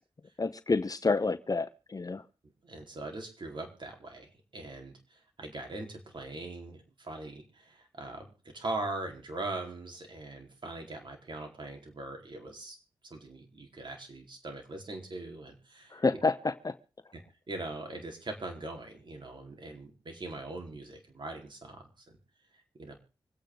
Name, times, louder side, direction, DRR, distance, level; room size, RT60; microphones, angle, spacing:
voice 1, 0.4-2.2 15.9-16.7, left 3 dB, 40° left, 13 dB, 0.8 m, -29 dB
voice 2, 2.6-12.8 13.0-16.0 17.1-17.2 17.5-22.2 22.5-22.9, right 2 dB, 60° right, 3 dB, 4.3 m, -41 dB
25.5 x 8.9 x 3.9 m, 0.35 s
cardioid pair, 45°, 9 cm